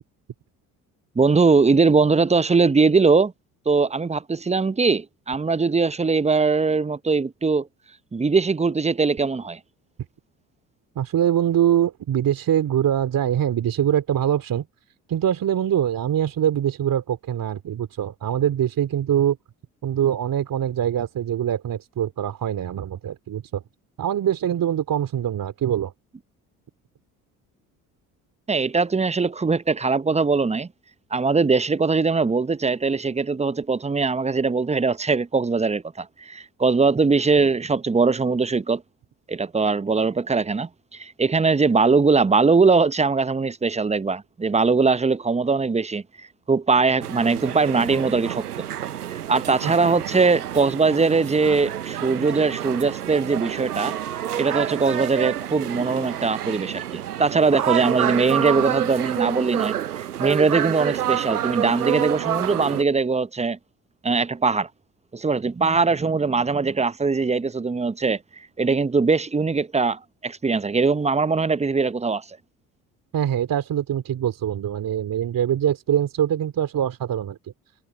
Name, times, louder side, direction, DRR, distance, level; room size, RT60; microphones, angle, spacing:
voice 1, 1.2-3.3 3.7-7.7 8.1-9.6 28.5-30.7 31.1-38.8 39.3-46.0 46.5-48.7 49.1-53.9 54.4-63.6 64.0-64.7 65.1-68.2 68.6-72.4, right 4 dB, 15° right, 0.9 m, -21 dB
voice 2, 10.9-14.6 15.1-19.4 19.8-23.6 24.0-25.9 49.6-49.7 73.1-77.4, right 10 dB, 45° right, 3.0 m, -23 dB
sound 1, 47.0-62.8, right 11 dB, 85° right, 1.0 m, -28 dB
figure-of-eight pair, 50°, 45 cm